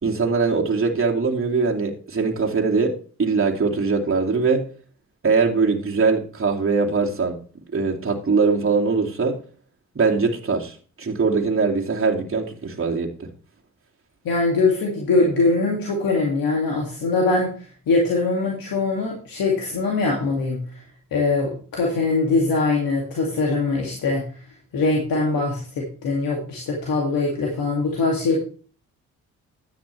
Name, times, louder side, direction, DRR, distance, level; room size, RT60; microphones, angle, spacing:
voice 1, 0.0-2.9 3.2-4.7 5.2-7.4 7.7-9.4 9.9-13.3, right 4 dB, 35° right, 0 dB, 2.4 m, -21 dB
voice 2, 14.2-20.8 21.1-24.2 24.7-28.4, left 3 dB, 70° left, -1 dB, 2.4 m, -22 dB
10.0 x 9.5 x 3.3 m, 0.41 s
hypercardioid pair, 45°, 36 cm